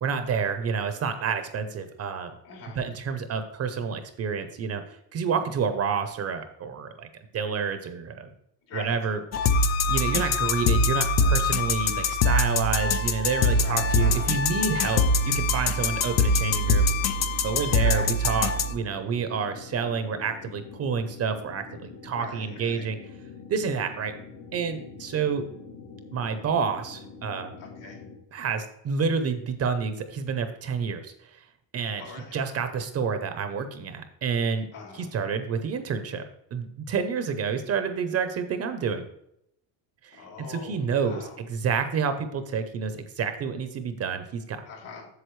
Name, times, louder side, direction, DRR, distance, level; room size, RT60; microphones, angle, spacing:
voice 1, 0.0-2.3 2.8-4.8 5.1-7.1 7.3-8.3 8.7-9.2 9.9-16.9 17.4-23.0 23.5-24.1 24.5-25.4 26.1-27.6 28.3-31.1 31.7-32.0 32.3-34.7 34.9-36.2 36.5-39.0 40.0-44.6, right 6 dB, 35° right, 8 dB, 0.6 m, -29 dB
voice 2, 2.4-2.8 8.7-8.9 13.6-14.3 17.7-18.1 22.1-22.9 27.6-28.0 32.0-32.4 34.7-35.1 40.1-41.4 44.6-45.1, left 4 dB, 70° left, -1 dB, 3.3 m, -42 dB
sound 1, 9.3-18.7, left 2 dB, 40° left, 0.5 m, -23 dB
sound 2, 13.4-28.2, left 5 dB, 90° left, 2.0 m, -45 dB
8.0 x 7.2 x 3.1 m, 0.76 s
cardioid pair, 175°, 44 cm